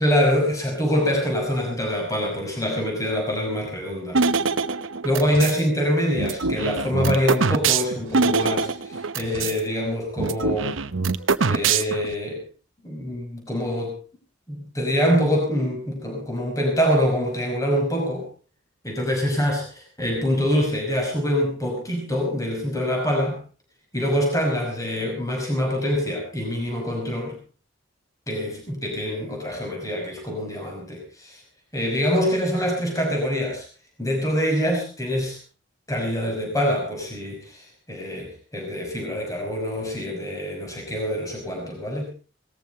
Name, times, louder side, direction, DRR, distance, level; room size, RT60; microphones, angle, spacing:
voice 1, 0.0-4.2 5.0-10.7 11.5-12.4 12.8-14.0 14.5-18.3 18.8-23.4 23.9-27.4 28.3-31.4 31.7-33.7 34.0-35.4 35.9-42.1, equal, 15° left, 1 dB, 5.6 m, -25 dB
sound 1, 4.1-5.6 6.2-9.6 9.9-10.0 10.2-12.1, right 4 dB, 80° right, 0.9 m, -23 dB
18.5 x 14.5 x 4.5 m, 0.36 s
head